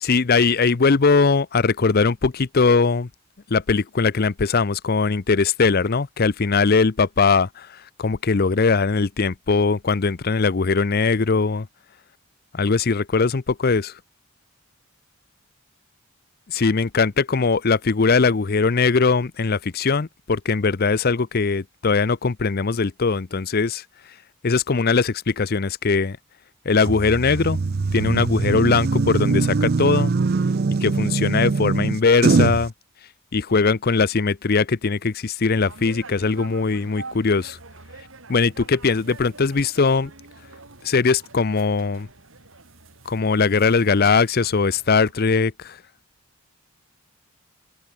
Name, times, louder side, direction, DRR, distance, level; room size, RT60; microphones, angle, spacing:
voice 1, 0.0-3.1 3.5-11.7 12.5-13.9 16.5-23.8 24.4-26.2 26.7-27.6 27.9-30.1 30.8-32.7 33.3-37.6 38.3-40.1 40.8-42.1 43.1-45.8, left 4 dB, 45° left, 0.6 m, -20 dB
sound 1, 26.8-32.7, right 4 dB, 45° right, 0.5 m, -22 dB
sound 2, 35.5-45.1, right 3 dB, 60° right, 3.0 m, -44 dB
open air
head